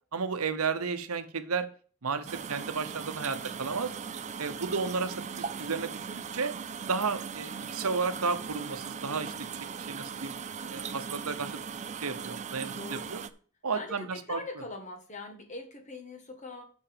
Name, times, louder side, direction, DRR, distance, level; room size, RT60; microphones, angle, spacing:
voice 1, 0.1-1.7 2.0-3.9 4.4-6.5 6.9-9.3 9.9-10.3 10.7-11.6 12.0-13.2 13.6-14.4, right 5 dB, 85° right, 10 dB, 0.9 m, -33 dB
sound 1, 2.3-13.3, right 6 dB, 30° right, 0.5 m, -39 dB
voice 2, 9.0-9.4 10.5-10.7 12.7-13.1 13.7-16.6, left 2 dB, 35° left, 4 dB, 1.6 m, -43 dB
6.6 x 5.8 x 6.8 m, 0.43 s
head